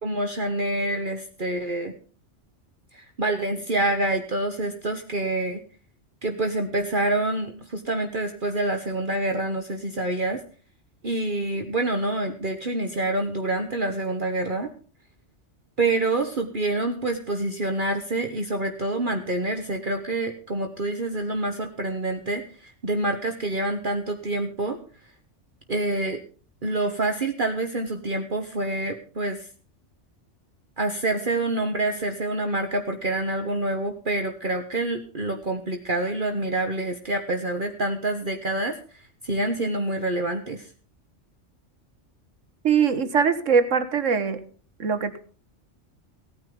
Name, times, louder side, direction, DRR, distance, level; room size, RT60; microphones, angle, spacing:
voice 1, 0.0-1.9 2.9-5.6 6.2-10.4 11.0-14.7 15.8-24.8 25.7-26.2 26.6-29.5 30.8-38.8 39.2-40.7, right 2 dB, 45° right, 4 dB, 1.4 m, -27 dB
voice 2, 42.6-44.4 44.8-45.2, right 6 dB, 90° right, 11 dB, 1.7 m, -22 dB
17.0 x 9.6 x 5.3 m, 0.41 s
omnidirectional pair, 1.3 m